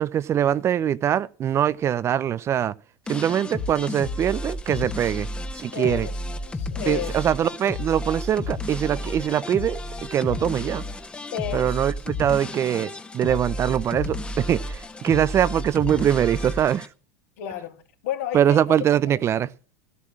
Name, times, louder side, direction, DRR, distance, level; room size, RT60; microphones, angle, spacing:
voice 1, 0.0-2.7 3.1-5.3 5.5-6.1 6.9-10.8 11.5-16.9 18.3-19.5, right 10 dB, 35° right, 0.6 m, -23 dB
sound 1, 3.1-16.9, left 1 dB, 10° left, 1.3 m, -32 dB
voice 2, 5.7-7.2 11.3-11.8 17.4-18.6 19.1-19.2, left 10 dB, 65° left, 2.7 m, -32 dB
14.5 x 8.3 x 6.1 m
hypercardioid pair, 90°, 8 cm